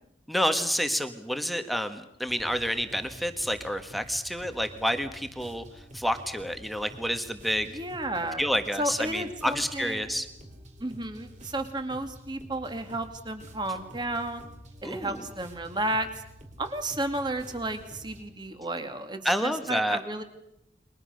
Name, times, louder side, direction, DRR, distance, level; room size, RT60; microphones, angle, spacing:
voice 1, 0.3-5.6 5.9-7.7 8.4-10.3 14.8-15.2 19.2-20.0, equal, ahead, 7 dB, 1.5 m, -29 dB
sound 1, 2.3-18.2, right 1 dB, 40° right, 4.6 m, -49 dB
voice 2, 7.7-8.4 8.8-10.2 10.8-14.4 14.8-16.1 16.6-20.2, right 1 dB, 25° right, 7 dB, 2.6 m, -32 dB
29.5 x 23.0 x 6.6 m, 0.80 s
head